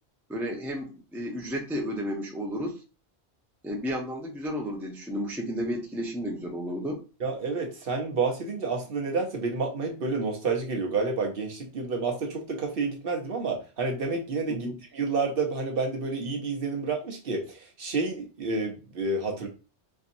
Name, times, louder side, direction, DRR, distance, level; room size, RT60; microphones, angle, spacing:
voice 1, 0.3-2.8 3.6-7.0 14.6-14.8, equal, ahead, 0 dB, 0.5 m, -32 dB
voice 2, 7.2-14.7 14.9-19.5, right 4 dB, 60° right, 2 dB, 1.0 m, -29 dB
4.4 x 2.7 x 2.6 m, 0.32 s
omnidirectional pair, 1.1 m